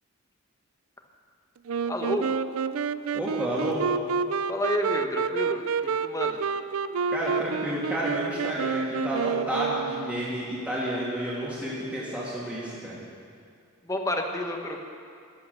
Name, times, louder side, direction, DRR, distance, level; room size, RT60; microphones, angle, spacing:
Wind instrument woodwind instrument, 1.7-10.4, right 5 dB, 75° right, 0.5 m, -29 dB
voice 1, 1.8-2.3 4.5-5.6 6.0-6.4 13.9-14.8, left 1 dB, 15° left, 3 dB, 1.3 m, -29 dB
voice 2, 3.1-3.9 7.1-13.0, right 1 dB, 5° right, -8 dB, 2.3 m, -30 dB
15.0 x 11.5 x 6.7 m, 2.3 s
head